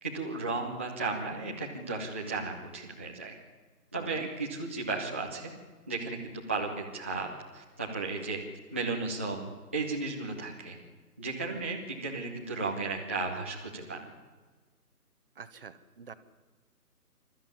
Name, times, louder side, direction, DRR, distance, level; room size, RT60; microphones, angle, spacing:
voice 1, 0.0-3.3 3.9-5.5 5.9-7.3 7.5-8.4 8.7-10.8 11.2-14.1, right 3 dB, 10° right, -5 dB, 0.7 m, -34 dB
voice 2, 4.0-4.3 15.4-16.1, right 6 dB, 35° right, 12 dB, 1.2 m, -47 dB
28.5 x 13.0 x 9.8 m, 1.4 s
figure-of-eight pair, 150°, 47 cm